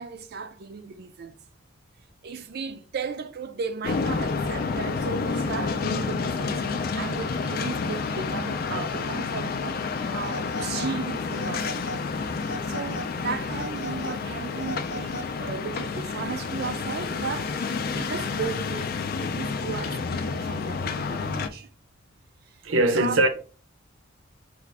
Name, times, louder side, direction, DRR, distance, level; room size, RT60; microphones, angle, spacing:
voice 1, 0.0-1.4 2.2-9.8 10.1-11.8 12.7-18.9 19.2-21.7 22.5-23.2, right 5 dB, 50° right, 0.4 m, -35 dB
sound 1, 3.8-21.5, left 4 dB, 45° left, 0.4 m, -29 dB
Telephone, 10.2-10.9 11.3-12.0 12.4-13.1 13.5-15.5, equal, 80° left, 0.7 m, -39 dB
voice 2, 22.6-23.3, right 2 dB, 80° right, 0.7 m, -20 dB
4.7 x 2.4 x 3.4 m
head